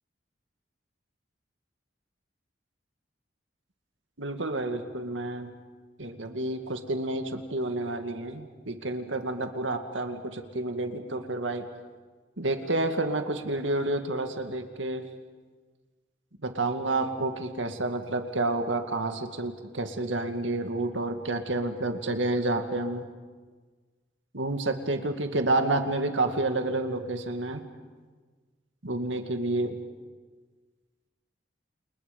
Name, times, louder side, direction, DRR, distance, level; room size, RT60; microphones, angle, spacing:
voice 1, 4.2-5.5 6.0-11.6 12.4-15.1 16.4-23.1 24.3-27.6 28.8-29.8, right 2 dB, 80° right, 6 dB, 2.1 m, -29 dB
29.0 x 29.0 x 5.3 m, 1.4 s
head